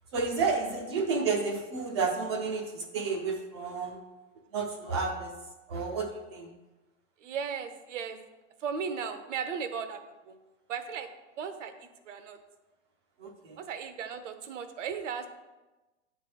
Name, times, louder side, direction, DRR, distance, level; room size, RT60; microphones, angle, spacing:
voice 1, 0.1-4.0 4.5-5.3 5.7-6.5 13.2-13.6, right 4 dB, 20° right, 2 dB, 0.5 m, -31 dB
voice 2, 7.2-8.2 8.6-10.0 10.3-10.4 10.7-11.1 11.4-11.7 12.1-12.4 13.6-15.3, right 6 dB, 70° right, 8 dB, 0.9 m, -36 dB
9.2 x 3.4 x 5.9 m, 1.1 s
supercardioid pair, 170°, 38 cm